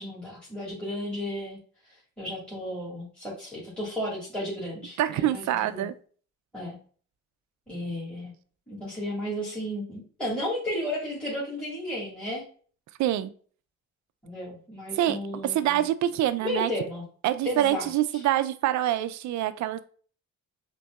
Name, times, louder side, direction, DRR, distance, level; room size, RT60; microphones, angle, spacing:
voice 1, 0.0-1.6 2.2-5.9 6.5-6.8 7.7-8.3 8.7-12.4 14.2-15.8 16.4-17.0 17.4-18.2, left 1 dB, 5° left, -6 dB, 1.7 m, -33 dB
voice 2, 5.0-5.9 13.0-13.3 14.9-16.7 17.2-19.8, right 12 dB, 70° right, 13 dB, 0.5 m, -26 dB
5.2 x 2.7 x 2.3 m, 0.44 s
cardioid pair, 90°, 30 cm